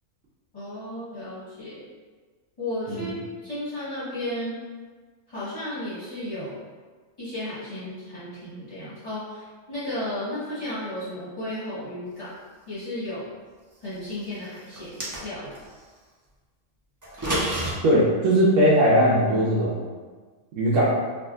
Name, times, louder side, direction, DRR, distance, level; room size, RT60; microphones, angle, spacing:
voice 1, 0.5-1.8 2.6-3.1 3.4-4.6 5.3-6.6 7.2-12.3 12.7-13.3 13.8-15.6, left 1 dB, 25° left, -12 dB, 1.0 m, -34 dB
sound 1, 14.7-15.6 17.0-17.7, right 1 dB, 30° right, 0.3 m, -28 dB
voice 2, 17.8-19.8 20.6-20.9, equal, 70° right, -7 dB, 0.9 m, -19 dB
3.5 x 2.4 x 2.4 m, 1.4 s
omnidirectional pair, 1.4 m